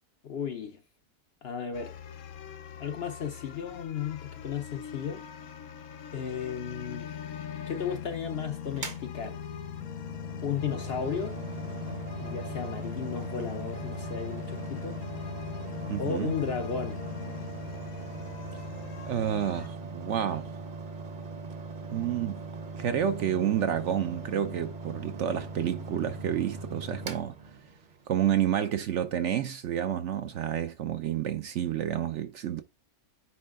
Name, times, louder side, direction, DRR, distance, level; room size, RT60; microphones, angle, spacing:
voice 1, 0.2-0.8 1.4-2.0 2.8-5.2 6.1-7.1 7.7-9.4 10.4-11.4 12.2-15.0 16.0-17.0, left 7 dB, 55° left, 0.7 m, -34 dB
sound 1, 1.7-19.7, left 8 dB, 80° left, 1.2 m, -41 dB
Mechanical fan, 8.7-28.1, right 3 dB, 40° right, 0.8 m, -40 dB
voice 2, 15.9-16.3 19.0-20.5 21.9-22.4 22.8-27.4 28.1-32.6, right 10 dB, 65° right, 0.8 m, -29 dB
9.3 x 3.2 x 3.6 m
omnidirectional pair, 1.5 m